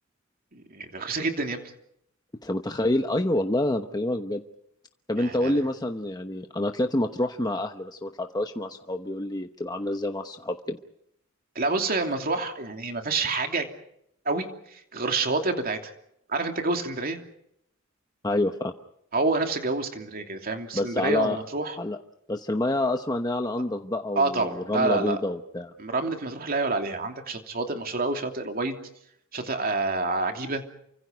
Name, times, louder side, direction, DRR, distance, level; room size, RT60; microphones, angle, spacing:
voice 1, 0.5-1.6 5.2-5.6 11.5-13.7 14.2-14.5 14.7-15.9 16.3-17.2 19.1-21.8 24.2-25.2 25.8-28.8 29.3-30.6, right 3 dB, 45° right, 4 dB, 2.9 m, -28 dB
voice 2, 2.4-4.4 5.1-10.8 18.2-18.7 20.7-21.4 21.8-22.0 22.3-25.7, left 1 dB, 20° left, 6 dB, 1.0 m, -27 dB
29.0 x 25.0 x 5.2 m, 0.75 s
head